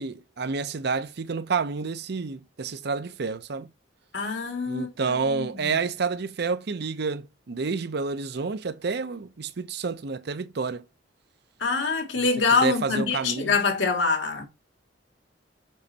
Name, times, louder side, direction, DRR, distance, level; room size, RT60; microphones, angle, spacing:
voice 1, 0.0-3.7 4.7-10.8 12.6-13.6, right 4 dB, 65° right, 0.6 m, -29 dB
voice 2, 4.1-5.8 11.6-14.5, left 4 dB, 90° left, 2.2 m, -25 dB
7.5 x 5.2 x 2.8 m
head